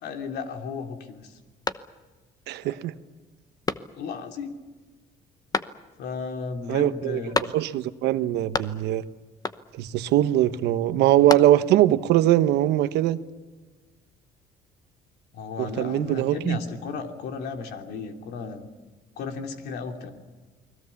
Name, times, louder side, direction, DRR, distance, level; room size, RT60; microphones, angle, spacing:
voice 1, 0.0-1.3 2.6-2.8 3.9-4.6 6.0-7.5 15.3-18.7 19.2-20.1, left 5 dB, 75° left, 4 dB, 3.0 m, -34 dB
sound 1, 1.6-2.3 2.7-2.8 3.6-4.3 5.5-6.2 7.3-7.9 8.2-9.0 9.4-9.9 10.9-11.9, left 4 dB, 20° left, 0.9 m, -32 dB
voice 2, 2.5-2.9 6.7-9.0 9.8-13.2 15.6-16.6, right 13 dB, 85° right, 12 dB, 1.1 m, -22 dB
29.5 x 21.0 x 7.2 m, 1.3 s
cardioid pair, 110°, 17 cm